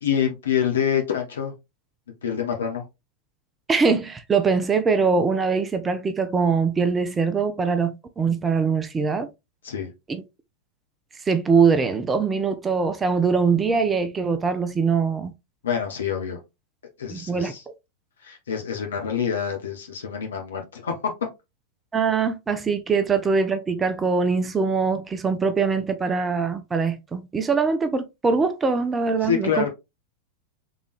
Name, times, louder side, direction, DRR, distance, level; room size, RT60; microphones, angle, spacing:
voice 1, 0.0-1.5 2.2-2.8 9.6-9.9 15.6-16.4 17.0-17.6 18.2-21.0 29.2-29.7, left 8 dB, 65° left, 1.3 m, -26 dB
voice 2, 3.7-9.3 10.1-10.2 11.3-15.3 17.1-17.5 21.9-29.7, right 5 dB, 15° right, 0.6 m, -22 dB
4.0 x 3.6 x 3.2 m
figure-of-eight pair, 90°, 0 cm